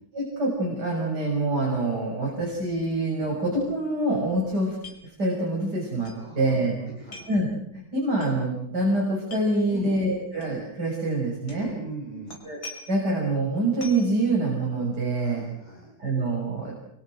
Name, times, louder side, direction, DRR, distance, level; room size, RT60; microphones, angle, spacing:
voice 1, 0.1-4.8 5.2-6.8 7.3-7.5 7.9-11.7 12.4-12.6 12.9-15.4 16.0-16.8, right 2 dB, 55° right, -2 dB, 7.2 m, -25 dB
sound 1, 4.8-5.0 5.3-5.4 6.0-6.2 7.1-7.4 8.2-8.3 9.2-9.4 10.4-10.5 11.5-11.7 12.3-13.1 13.8-14.1, left 3 dB, 80° left, 6.1 m, -43 dB
voice 2, 6.1-6.6 6.8-7.3 9.7-9.9 11.5-12.4 15.1-15.9, right 2 dB, 20° left, -2 dB, 6.8 m, -40 dB
29.0 x 24.5 x 6.4 m, 0.73 s
omnidirectional pair, 2.1 m